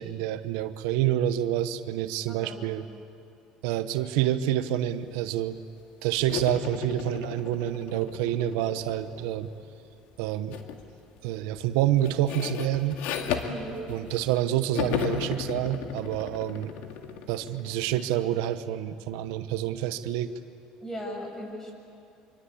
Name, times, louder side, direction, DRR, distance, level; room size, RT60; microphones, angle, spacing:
voice 1, 0.0-2.9 3.6-5.6 6.0-9.5 10.2-10.5 11.2-13.0 13.9-16.7 17.3-20.3, right 12 dB, 85° right, 11 dB, 1.0 m, -28 dB
sound 1, 6.3-9.6 10.5-10.8 11.2-14.4 14.7-18.3, left 7 dB, 75° left, 2.2 m, -35 dB
voice 2, 13.3-13.9 20.8-21.7, equal, 20° left, 1 dB, 7.4 m, -37 dB
25.5 x 24.5 x 8.6 m, 2.5 s
supercardioid pair, 105°, 2 cm